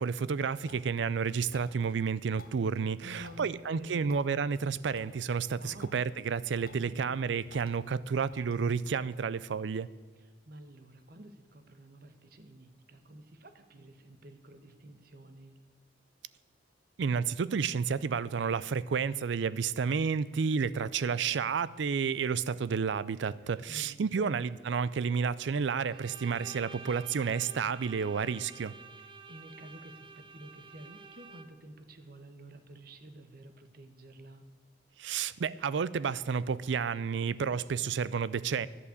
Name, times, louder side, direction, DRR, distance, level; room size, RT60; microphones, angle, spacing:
voice 1, 0.0-9.9 17.0-28.7 35.0-38.7, right 6 dB, 75° right, 19 dB, 0.4 m, -31 dB
sound 1, 0.7-8.9, left 3 dB, 50° left, 1.1 m, -58 dB
voice 2, 3.0-4.2 5.6-5.9 6.8-7.1 10.2-15.6 23.3-24.4 29.0-34.4, right 1 dB, 55° right, 8 dB, 1.1 m, -50 dB
Bowed string instrument, 25.9-31.7, right 4 dB, 25° right, 0.6 m, -50 dB
11.0 x 8.4 x 8.1 m, 1.4 s
head